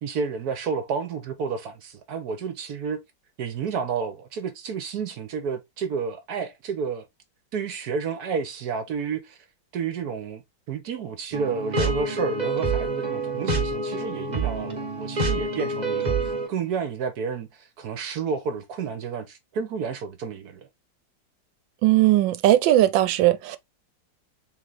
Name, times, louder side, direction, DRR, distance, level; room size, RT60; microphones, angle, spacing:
voice 1, 0.0-3.0 3.4-7.0 7.5-9.4 9.7-10.4 10.7-20.7, right 6 dB, 65° right, 1.1 m, -30 dB
sound 1, 11.3-16.5, right 3 dB, 30° right, 0.9 m, -27 dB
voice 2, 21.8-23.6, right 14 dB, 85° right, 1.3 m, -18 dB
3.7 x 3.2 x 3.8 m
omnidirectional pair, 2.0 m